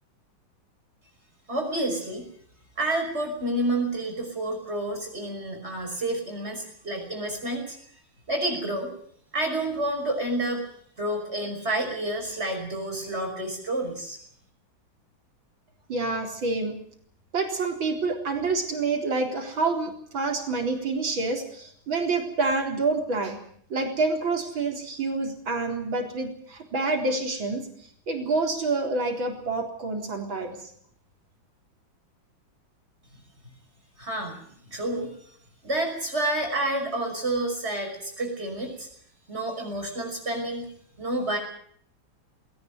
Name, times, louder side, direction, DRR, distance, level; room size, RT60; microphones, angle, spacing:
voice 1, 1.5-2.2 2.8-7.8 8.3-8.9 9.3-10.6 11.0-14.2 34.0-34.4 34.7-35.1 35.6-38.9 39.3-40.7 41.0-41.4, right 1 dB, 30° right, 2 dB, 6.0 m, -29 dB
voice 2, 15.9-16.7 17.3-23.4 23.7-27.7 28.1-30.6, right 3 dB, 65° right, 4 dB, 4.7 m, -27 dB
19.5 x 18.5 x 9.5 m, 0.63 s
omnidirectional pair, 2.3 m